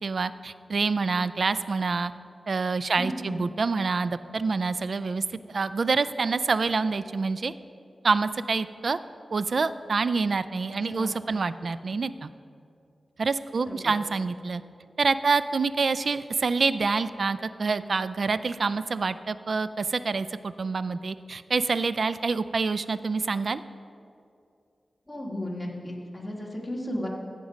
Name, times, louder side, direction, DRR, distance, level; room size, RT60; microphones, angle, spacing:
voice 1, 0.0-2.1 2.5-7.5 8.0-9.0 9.3-12.3 13.2-14.6 15.0-23.6, right 4 dB, 65° right, 14 dB, 0.3 m, -27 dB
voice 2, 3.0-3.4 10.9-11.3 13.6-14.0 25.1-27.1, left 1 dB, 10° left, -2 dB, 2.0 m, -35 dB
15.5 x 5.2 x 5.1 m, 2.5 s
cardioid pair, 65°, 0 cm